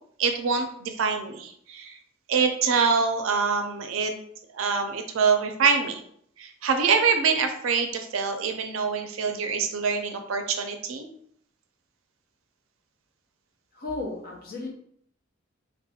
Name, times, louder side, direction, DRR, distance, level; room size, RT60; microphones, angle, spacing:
voice 1, 0.2-2.0 2.3-4.1 4.5-6.0 6.4-11.1, right 5 dB, 80° right, 6 dB, 0.4 m, -25 dB
voice 2, 13.7-14.7, left 2 dB, 50° left, -1 dB, 0.6 m, -34 dB
2.3 x 2.1 x 2.8 m, 0.64 s
head